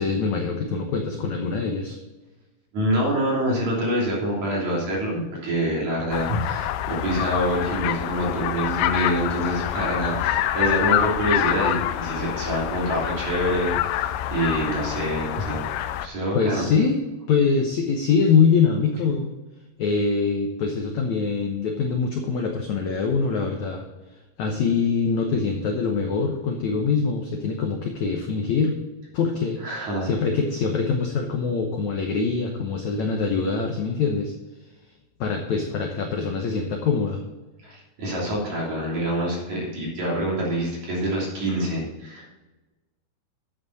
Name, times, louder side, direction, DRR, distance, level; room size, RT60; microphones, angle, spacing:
voice 1, 0.0-2.0 16.3-17.0 17.3-19.3 19.8-23.9 24.4-28.8 29.1-29.6 30.0-34.3 35.2-37.2, left 5 dB, 75° left, 3 dB, 1.7 m, -23 dB
voice 2, 2.7-15.7 16.0-16.7 29.6-30.1 37.6-42.3, equal, 45° right, -3 dB, 4.2 m, -26 dB
sound 1, 6.1-16.1, left 12 dB, 90° left, 2.8 m, -26 dB
12.0 x 8.2 x 4.1 m, 1.2 s
omnidirectional pair, 4.7 m